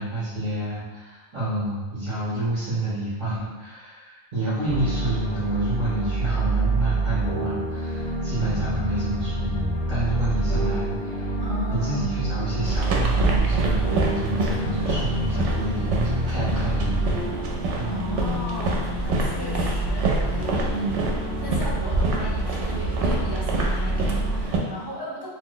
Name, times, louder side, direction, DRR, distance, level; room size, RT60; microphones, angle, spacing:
voice 1, 0.0-11.3 11.7-17.1 17.8-17.9, right 1 dB, 45° right, -10 dB, 0.8 m, -28 dB
sound 1, 4.6-24.4, right 2 dB, 80° left, 1.3 m, -27 dB
voice 2, 11.4-12.2 17.6-25.3, right 1 dB, 30° left, -6 dB, 0.4 m, -35 dB
sound 2, 12.6-24.6, right 2 dB, 75° right, 0.9 m, -27 dB
3.0 x 2.0 x 3.7 m, 1.2 s
omnidirectional pair, 1.2 m